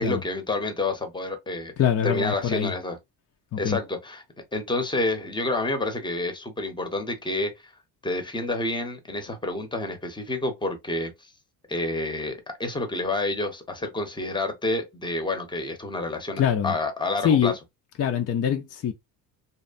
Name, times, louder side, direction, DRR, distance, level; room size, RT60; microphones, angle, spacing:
voice 1, 0.0-1.7 2.0-3.0 3.6-4.2 4.5-7.5 8.0-11.3 11.7-17.5, left 2 dB, 10° left, 0.7 m, -29 dB
voice 2, 1.8-2.7 3.5-3.8 16.4-16.7 17.2-17.6 18.0-18.9, left 9 dB, 35° left, 0.4 m, -24 dB
2.8 x 2.1 x 2.4 m
cardioid pair, 100°, 46 cm